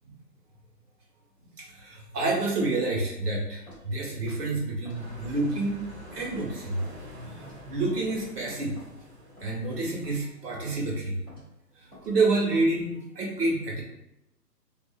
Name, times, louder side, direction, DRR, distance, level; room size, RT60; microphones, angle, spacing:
voice 1, 1.6-5.8 6.1-6.8 7.3-8.7 9.4-11.2 11.8-13.8, right 2 dB, 70° right, -2 dB, 1.2 m, -28 dB
Walk footsteps, 3.7-3.9 4.3-4.4 4.8-5.0 5.4-5.7 6.1-6.2 6.8-6.9 7.4-7.7 8.1-8.3 8.8-8.9 9.4-9.6 10.0-10.3 10.7-10.8 11.3-11.4 11.9-12.1 12.5-12.7, left 1 dB, 5° right, 0.7 m, -51 dB
sound 1, 4.9-10.6, equal, 45° right, 0.5 m, -45 dB
2.5 x 2.4 x 2.3 m, 0.84 s
hypercardioid pair, 155°, 50 cm